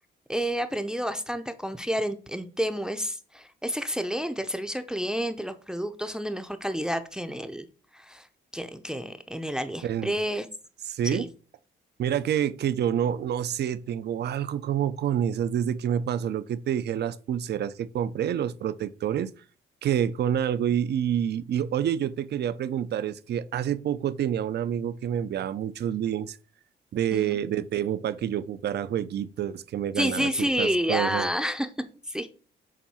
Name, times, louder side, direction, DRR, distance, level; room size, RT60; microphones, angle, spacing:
voice 1, 0.3-7.6 7.9-8.3 8.5-10.5 11.0-11.3 27.1-27.4 30.0-31.7 32.1-32.3, equal, 5° right, 0.6 m, -29 dB
voice 2, 9.8-10.2 10.9-11.3 12.0-19.3 19.8-26.4 26.9-31.3, right 9 dB, 55° right, 0.6 m, -28 dB
7.3 x 2.6 x 5.6 m
cardioid pair, 90°, 20 cm